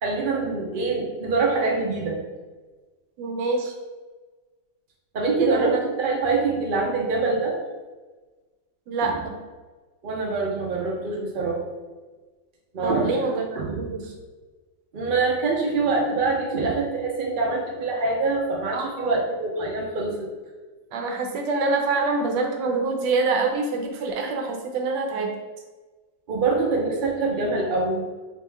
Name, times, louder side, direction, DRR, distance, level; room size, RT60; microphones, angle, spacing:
voice 1, 0.0-2.2 5.1-7.6 9.0-9.2 10.0-11.6 12.7-13.2 13.5-13.8 14.9-20.3 26.3-28.0, right 3 dB, 55° right, -1 dB, 0.5 m, -25 dB
voice 2, 3.2-3.7 5.4-5.8 8.9-9.3 12.8-13.4 13.8-14.0 18.7-19.2 20.9-25.3, right 3 dB, 80° right, 2 dB, 1.3 m, -25 dB
4.0 x 2.9 x 3.4 m, 1.3 s
omnidirectional pair, 1.9 m